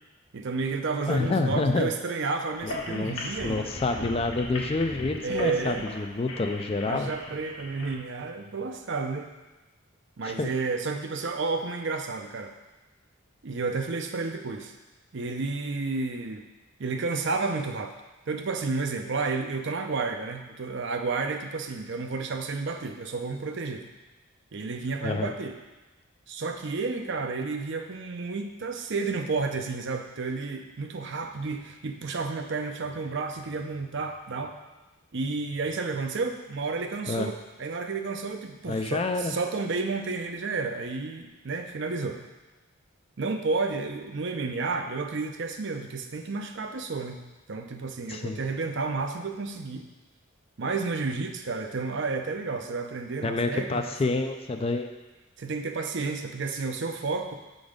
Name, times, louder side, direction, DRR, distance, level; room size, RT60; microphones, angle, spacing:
voice 1, 0.3-3.7 5.2-5.9 6.8-9.3 10.2-12.5 13.4-14.7 15.1-16.4 16.8-17.9 18.3-23.9 24.5-25.6 26.3-34.6 35.1-42.3 43.2-47.2 47.5-49.9 50.6-53.8 55.4-57.3, right 4 dB, 60° right, 5 dB, 0.6 m, -31 dB
voice 2, 1.1-1.9 2.6-3.2 3.4-7.1 10.2-10.5 25.0-25.3 37.1-37.3 38.7-39.3 48.1-48.4 53.2-54.9, left 3 dB, 30° left, 6 dB, 0.3 m, -28 dB
sound 1, 2.5-7.9, left 1 dB, 65° left, 1.2 m, -38 dB
7.1 x 3.9 x 5.0 m, 1.1 s
head